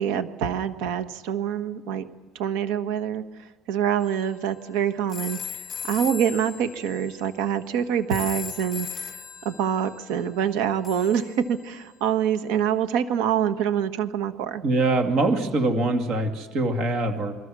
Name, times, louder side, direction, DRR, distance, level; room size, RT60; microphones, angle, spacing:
voice 1, 0.0-2.1 2.3-3.2 3.7-9.1 9.4-14.6, right 9 dB, 80° right, 9 dB, 1.6 m, -25 dB
sound 1, 4.0-12.1, left 7 dB, 30° left, 2.1 m, -39 dB
voice 2, 14.6-17.4, right 2 dB, 40° right, 5 dB, 2.3 m, -23 dB
28.5 x 22.5 x 6.3 m, 1.3 s
cardioid pair, 175°, 0 cm